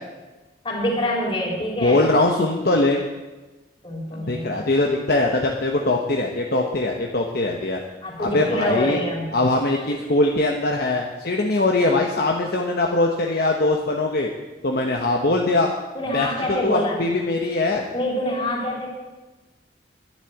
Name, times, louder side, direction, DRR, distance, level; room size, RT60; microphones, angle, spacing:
voice 1, 0.6-2.0 3.8-4.4 8.0-9.3 15.9-17.0 17.9-18.9, left 1 dB, 30° left, -2 dB, 3.9 m, -25 dB
voice 2, 1.8-3.0 4.1-7.8 8.2-9.0 9.3-14.3 14.6-15.7 16.1-16.3 16.6-17.9, left 2 dB, 55° left, 1 dB, 1.2 m, -21 dB
11.0 x 11.0 x 8.1 m, 1.2 s
head